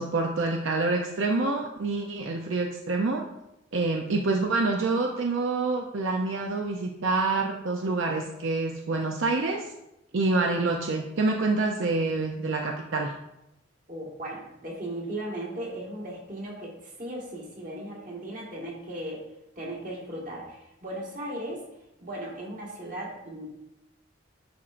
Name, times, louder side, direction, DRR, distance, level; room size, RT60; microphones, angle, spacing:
voice 1, 0.0-3.2 3.7-9.7 10.1-13.1, right 3 dB, 75° right, 2 dB, 0.6 m, -27 dB
voice 2, 13.9-19.2 19.5-21.6 22.0-23.5, right 1 dB, 40° right, -3 dB, 1.6 m, -37 dB
10.0 x 4.4 x 2.5 m, 0.86 s
head